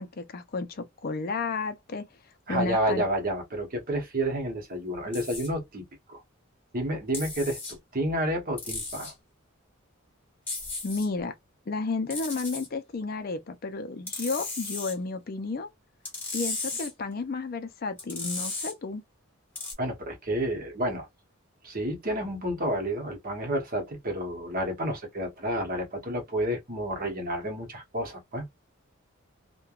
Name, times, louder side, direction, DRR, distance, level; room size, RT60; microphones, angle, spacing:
voice 1, 0.0-2.0 2.5-3.0 10.8-11.3 11.7-15.7 16.3-19.0, left 3 dB, 45° left, 0.4 m, -32 dB
voice 2, 2.5-5.8 6.1-6.2 6.7-9.1 19.8-21.1 21.6-28.4, right 1 dB, 40° right, 0.9 m, -30 dB
sound 1, 5.1-5.5 7.1-7.7 8.6-9.1 10.5-11.1 12.1-12.7 14.1-14.9 16.1-16.9 18.0-18.7 19.6-19.7, left 3 dB, 10° left, 1.2 m, -35 dB
3.2 x 2.2 x 2.3 m
head